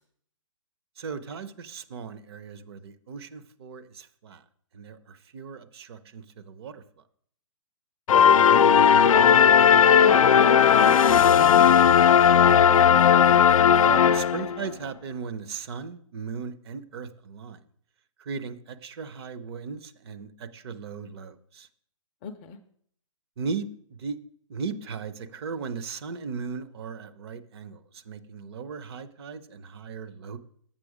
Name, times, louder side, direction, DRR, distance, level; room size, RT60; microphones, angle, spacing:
voice 1, 1.0-4.4 4.7-7.0 13.2-13.5 13.7-17.6 18.2-21.7 23.4-24.2 24.5-30.4, right 5 dB, 50° right, 11 dB, 0.7 m, -37 dB
sound 1, 8.1-14.7, left 8 dB, 90° left, 0.4 m, -17 dB
voice 2, 8.4-9.1 10.0-12.1 22.2-22.6, left 6 dB, 20° left, 8 dB, 0.3 m, -34 dB
7.6 x 6.3 x 4.9 m, 0.62 s
hypercardioid pair, 155°, 17 cm